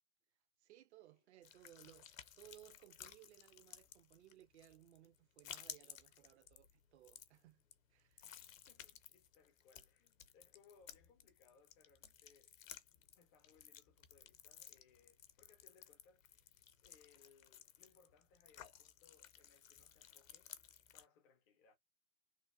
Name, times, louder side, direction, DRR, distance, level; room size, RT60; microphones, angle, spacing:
voice 1, 0.6-7.6 7.9-8.4, right 13 dB, 55° right, 0.5 m, -63 dB
sound 1, 1.4-21.0, left 10 dB, 70° left, 0.7 m, -57 dB
voice 2, 8.2-12.5 13.1-16.5 16.8-20.5 20.9-21.8, left 5 dB, 15° left, 0.3 m, -70 dB
3.2 x 2.2 x 2.3 m
figure-of-eight pair, 105°, 42 cm